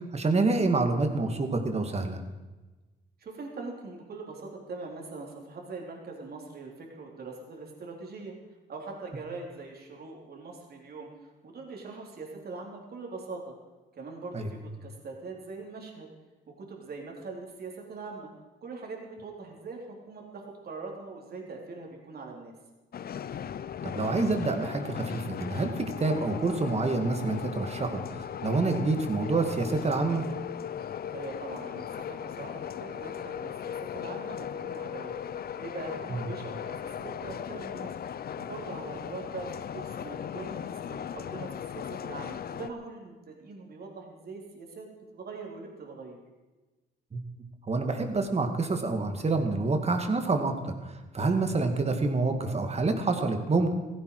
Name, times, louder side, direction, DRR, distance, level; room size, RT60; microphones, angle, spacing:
voice 1, 0.1-2.2 14.3-14.5 23.8-28.0 28.4-30.2 36.1-36.2 47.1-47.2 47.7-50.7 51.1-53.7, right 3 dB, 30° right, 5 dB, 2.3 m, -27 dB
voice 2, 3.2-8.3 8.7-11.1 11.4-13.5 13.9-16.1 16.6-18.3 18.6-22.5 31.1-35.1 35.6-37.9 38.4-44.9 45.1-46.2, right 3 dB, 50° right, 0 dB, 3.9 m, -42 dB
sound 1, 22.9-42.7, left 9 dB, 50° left, 0.7 m, -37 dB
16.0 x 16.0 x 4.9 m, 1.2 s
cardioid pair, 90°, 20 cm